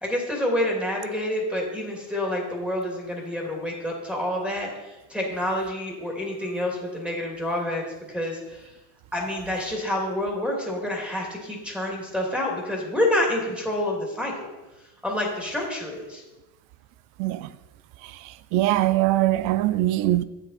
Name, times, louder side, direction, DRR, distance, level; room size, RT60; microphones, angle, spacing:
voice 1, 0.0-7.8 8.1-8.7 9.1-14.5 15.0-16.2, left 1 dB, ahead, 2.5 m, -28 dB
voice 2, 17.2-17.5 18.0-20.2, right 15 dB, 85° right, 0.6 m, -22 dB
8.0 x 6.9 x 4.3 m
supercardioid pair, 90°, 48 cm